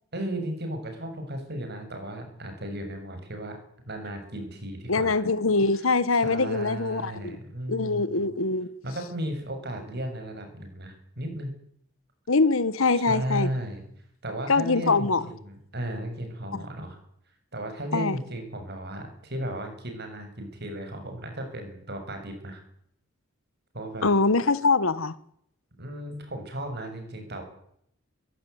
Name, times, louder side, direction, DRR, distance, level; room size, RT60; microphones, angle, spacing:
voice 1, 0.1-3.6 3.9-5.2 6.1-8.3 8.8-11.6 12.9-13.8 14.2-17.0 17.5-22.6 23.7-24.1 25.8-27.4, right 1 dB, 50° right, 7.5 m, -35 dB
voice 2, 4.9-7.4 7.7-8.7 12.3-13.5 14.5-15.2 16.5-16.6 17.9-18.2 24.0-25.1, left 3 dB, 80° left, 1.3 m, -23 dB
22.5 x 16.5 x 9.6 m
head